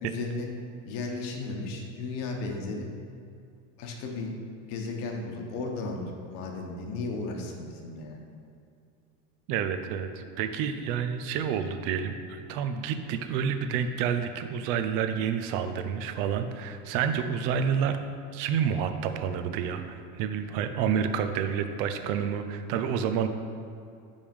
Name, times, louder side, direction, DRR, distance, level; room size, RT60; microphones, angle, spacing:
voice 1, 0.0-0.5 0.8-2.9 3.8-4.3 4.7-8.2, left 3 dB, 60° left, 2 dB, 1.2 m, -35 dB
voice 2, 9.5-18.0 18.3-23.3, right 7 dB, 60° right, 8 dB, 0.6 m, -29 dB
5.3 x 5.0 x 5.3 m, 2.5 s
supercardioid pair, 130°, 37 cm